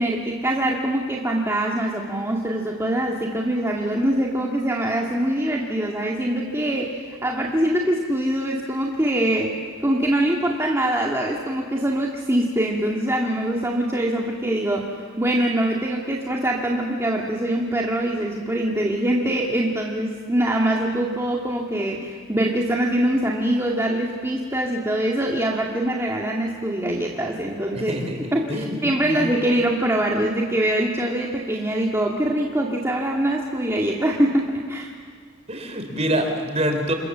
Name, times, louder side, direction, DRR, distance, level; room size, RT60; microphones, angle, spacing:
voice 1, 0.0-9.6 9.8-27.9 28.3-34.9, right 1 dB, 15° right, -2 dB, 2.0 m, -23 dB
voice 2, 27.7-28.8 29.0-29.2 35.5-36.9, right 1 dB, 30° right, 5 dB, 3.8 m, -26 dB
29.0 x 27.0 x 7.4 m, 2.1 s
head